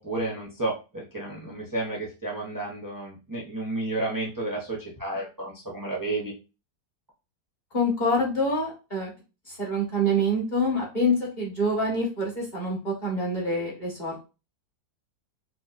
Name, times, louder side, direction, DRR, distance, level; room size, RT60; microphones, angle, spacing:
voice 1, 0.0-6.3, right 2 dB, 35° right, -4 dB, 0.3 m, -31 dB
voice 2, 7.7-9.1 9.6-14.2, equal, 30° left, -3 dB, 1.2 m, -26 dB
4.4 x 2.5 x 2.5 m, 0.30 s
omnidirectional pair, 2.0 m